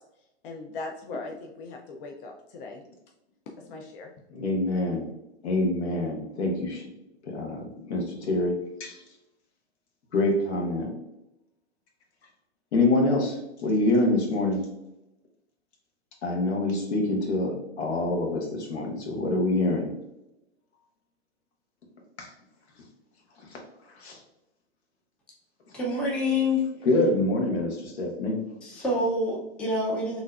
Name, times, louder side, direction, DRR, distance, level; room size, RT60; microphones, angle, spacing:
voice 1, 0.4-2.8 3.5-4.1, left 3 dB, 55° left, 1 dB, 0.5 m, -39 dB
voice 2, 4.3-5.1 5.4-6.9 7.2-9.0 10.1-10.9 12.7-14.7 16.2-19.9 22.2-22.3 23.5-23.6 23.9-24.2 26.8-28.4, left 2 dB, 80° left, 1 dB, 1.1 m, -26 dB
voice 3, 25.7-26.6 28.6-30.2, left 2 dB, 5° left, -3 dB, 0.3 m, -26 dB
3.7 x 2.6 x 2.3 m, 0.89 s
hypercardioid pair, 130°, 33 cm